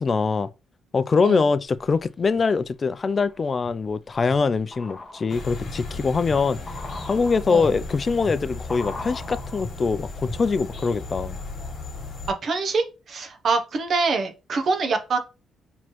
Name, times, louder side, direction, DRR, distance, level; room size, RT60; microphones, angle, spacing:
voice 1, 0.0-0.5 0.9-6.6 7.1-11.4, left 4 dB, 35° left, 0.3 m, -23 dB
sound 1, 1.7-2.4 2.9-10.7 11.0-11.1, left 2 dB, 20° left, 0.9 m, -40 dB
sound 2, 5.3-12.3, left 3 dB, 55° left, 1.5 m, -36 dB
voice 2, 12.4-15.2, right 4 dB, 55° right, 0.7 m, -25 dB
4.3 x 3.1 x 2.9 m
cardioid pair, 90°, 0 cm